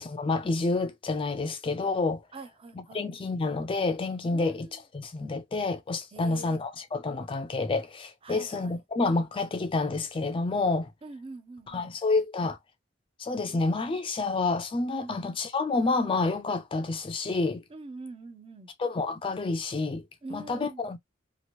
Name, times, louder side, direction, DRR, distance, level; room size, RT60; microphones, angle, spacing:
voice 1, 0.0-2.2 2.9-10.9 11.7-12.6 13.2-17.6 18.8-20.0 20.3-21.0, left 3 dB, 25° left, 0.4 m, -29 dB
voice 2, 2.3-3.1 4.3-4.8 6.1-6.6 8.2-8.8 11.0-11.9 15.0-15.3 17.7-18.7 20.2-20.9, right 2 dB, 30° right, 0.6 m, -44 dB
2.9 x 2.5 x 2.9 m
head